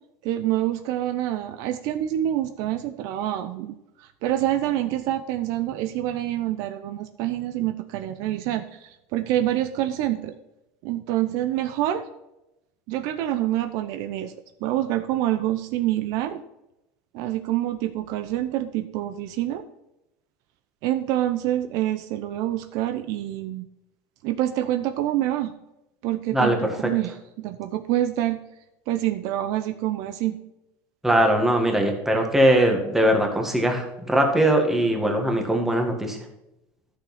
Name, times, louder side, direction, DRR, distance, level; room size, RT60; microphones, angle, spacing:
voice 1, 0.2-10.3 10.8-12.0 12.9-14.3 14.6-16.4 17.1-19.6 20.8-23.7 24.2-25.5 26.0-28.4 28.9-30.4, right 13 dB, 65° right, 9 dB, 0.7 m, -26 dB
voice 2, 31.0-36.2, right 1 dB, 5° right, 2 dB, 1.7 m, -21 dB
11.5 x 6.4 x 4.3 m, 0.90 s
supercardioid pair, 140°, 7 cm